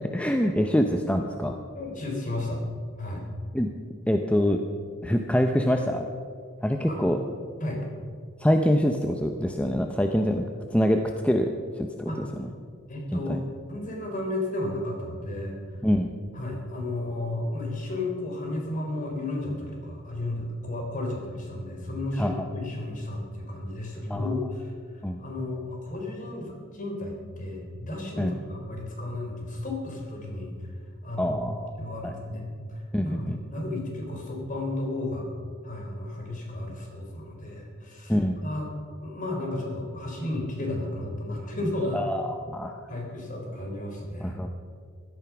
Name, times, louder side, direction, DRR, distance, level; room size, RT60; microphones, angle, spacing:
voice 1, 0.1-1.5 3.5-3.7 4.1-4.6 5.0-6.1 6.6-7.2 8.4-10.4 10.7-11.5 11.8-12.1 12.4-12.5 13.1-13.4 15.8-16.1 22.2-22.5 24.1-24.3 25.0-25.2 28.2-28.3 31.2-31.7 32.0-32.1 32.9-33.4 38.1-38.4 41.9-42.8 44.2-44.5, equal, 5° left, 4 dB, 0.7 m, -25 dB
voice 2, 1.7-2.6 3.0-3.3 6.9-7.2 7.6-7.8 12.1-12.3 12.9-13.4 13.7-15.8 16.3-30.7 31.0-31.4 31.8-35.3 35.6-38.7 39.0-42.0 42.9-44.4, left 1 dB, 40° left, 0 dB, 3.7 m, -33 dB
16.5 x 13.0 x 6.0 m, 2.2 s
head